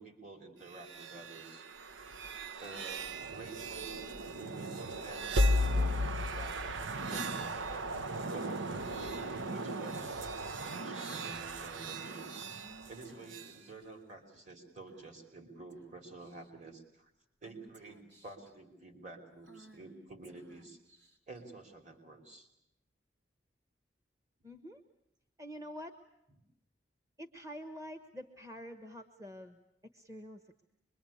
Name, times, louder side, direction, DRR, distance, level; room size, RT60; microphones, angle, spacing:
voice 1, 0.0-1.6 2.6-4.1 4.4-8.0 8.3-9.1 9.5-12.3 12.9-17.1 17.4-20.8 21.3-22.5, right 3 dB, 40° right, 4 dB, 3.3 m, -50 dB
sound 1, 0.7-13.5, equal, 80° right, 0.9 m, -36 dB
Female speech woman speaking / Whispering, 12.4-13.8 14.9-15.3 15.7-15.9 16.2-16.7 17.4-18.5 19.4-21.4, right 2 dB, 65° right, 3.9 m, -59 dB
voice 2, 24.4-24.8 25.4-26.0 27.2-29.6 29.9-30.6, equal, 15° right, 7 dB, 1.2 m, -47 dB
25.5 x 23.0 x 8.5 m, 0.82 s
head